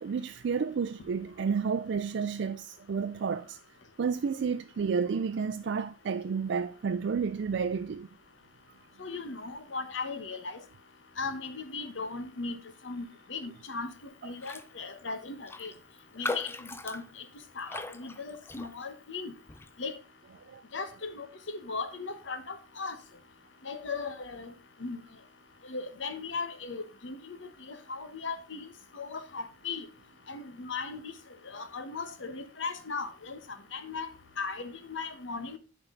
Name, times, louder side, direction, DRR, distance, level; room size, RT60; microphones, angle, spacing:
voice 1, 0.0-3.6 4.0-8.1 20.5-20.6, right 5 dB, 65° right, 0.4 m, -31 dB
voice 2, 9.0-10.6 11.2-12.6 12.8-13.9 14.2-15.7 16.1-17.2 17.6-19.3 19.8-19.9 20.7-23.0 23.6-24.5 24.8-25.0 25.6-28.7 28.9-29.9 30.3-31.1 31.4-33.4 33.7-34.1 34.4-35.6, left 4 dB, 80° left, 1.1 m, -37 dB
Raindrop, 14.4-14.7 15.0-15.1 15.5-19.0 19.5-19.8, left 2 dB, 15° left, 0.4 m, -39 dB
11.5 x 4.7 x 3.8 m
head